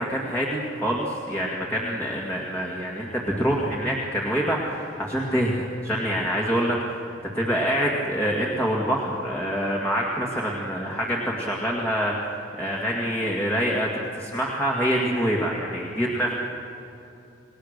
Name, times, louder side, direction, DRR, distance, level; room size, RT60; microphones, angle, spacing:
voice 1, 0.0-16.4, equal, 10° left, -3 dB, 2.0 m, -26 dB
28.5 x 19.0 x 6.7 m, 2.8 s
head